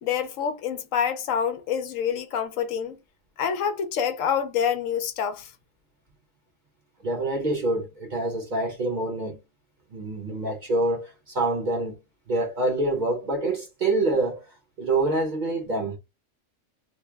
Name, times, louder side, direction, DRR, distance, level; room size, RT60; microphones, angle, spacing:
voice 1, 0.0-3.0 3.4-5.5, left 8 dB, 75° left, 1.0 m, -27 dB
voice 2, 7.0-9.4 9.9-11.9 12.3-14.5 14.8-16.0, right 2 dB, 40° right, 0.9 m, -26 dB
3.1 x 2.1 x 3.3 m
omnidirectional pair, 1.4 m